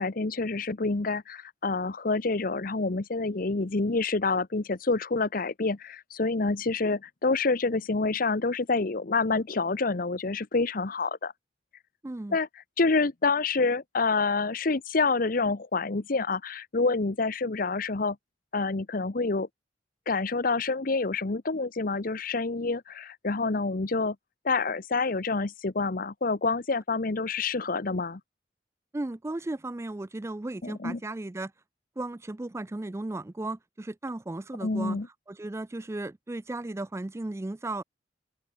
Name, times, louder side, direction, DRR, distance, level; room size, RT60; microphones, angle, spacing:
voice 1, 0.0-11.3 12.3-12.5 12.8-18.2 18.5-19.5 20.1-24.2 24.4-28.2 30.6-31.0 34.6-35.1, left 3 dB, 50° left, 0.9 m, -27 dB
voice 2, 12.0-12.4 28.9-31.5 32.0-35.0 35.3-37.8, right 2 dB, 15° right, 0.4 m, -35 dB
open air
head